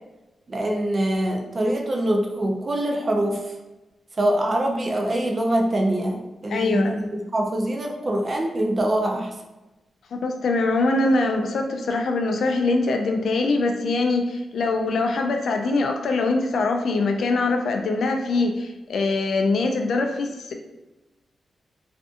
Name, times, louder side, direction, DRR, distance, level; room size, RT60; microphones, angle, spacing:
voice 1, 0.5-3.5 4.2-9.3, right 1 dB, 40° right, 1 dB, 0.4 m, -24 dB
voice 2, 6.5-7.0 10.2-20.5, left 3 dB, 75° left, 4 dB, 0.3 m, -23 dB
2.5 x 2.5 x 2.4 m, 1.0 s
cardioid pair, 90°, 0 cm